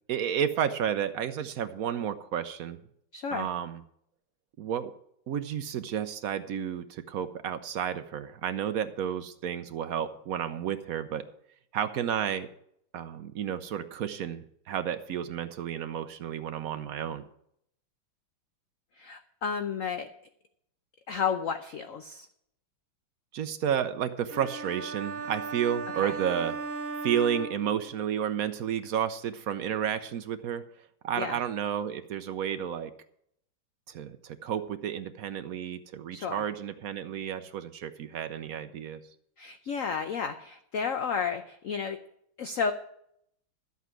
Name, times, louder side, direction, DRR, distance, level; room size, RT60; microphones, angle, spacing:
voice 1, 0.1-2.8 3.3-3.8 4.6-4.9 5.3-11.2 11.7-12.5 12.9-17.2 23.3-26.6 27.0-30.6 31.0-32.9 33.9-39.0, right 9 dB, 70° right, 10 dB, 0.8 m, -31 dB
voice 2, 3.1-3.5 19.0-20.1 21.1-22.3 25.9-26.1 31.2-31.4 36.1-36.4 39.4-42.0 42.4-42.7, left 6 dB, 75° left, 8 dB, 0.7 m, -32 dB
sound 1, 24.3-28.2, right 4 dB, 50° right, 1.4 m, -37 dB
12.0 x 8.3 x 6.2 m, 0.72 s
omnidirectional pair, 2.3 m